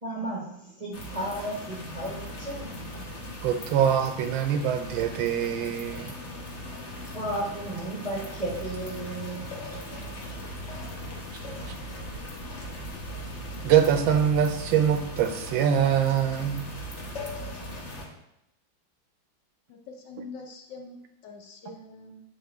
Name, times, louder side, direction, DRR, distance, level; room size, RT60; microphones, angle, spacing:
voice 1, 0.0-2.8 7.1-10.3, right 1 dB, 30° right, -5 dB, 0.6 m, -34 dB
sound 1, 0.9-18.1, left 1 dB, 45° left, 1.1 m, -39 dB
voice 2, 3.4-6.1 11.4-11.7 13.6-16.7, right 9 dB, 75° right, 7 dB, 1.3 m, -24 dB
voice 3, 19.7-21.0 21.2-22.2, left 3 dB, 65° left, 2 dB, 1.3 m, -44 dB
8.3 x 3.6 x 3.4 m, 0.81 s
omnidirectional pair, 2.3 m